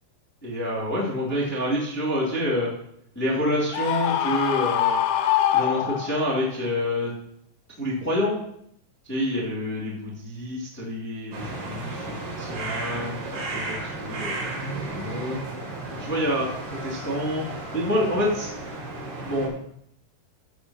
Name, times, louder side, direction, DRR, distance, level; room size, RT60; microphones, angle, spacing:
voice 1, 0.4-2.7 3.1-5.0 5.5-7.1 7.8-8.4 9.0-14.5 14.9-15.4 16.0-16.5 16.8-17.5 17.7-18.5 19.2-19.5, left 1 dB, 15° left, -7 dB, 0.5 m, -27 dB
Screaming, 3.7-6.4, left 10 dB, 80° left, 2.9 m, -24 dB
sound 1, 11.3-19.5, right 2 dB, 85° right, 5.1 m, -34 dB
15.5 x 7.9 x 2.9 m, 0.72 s
omnidirectional pair, 5.6 m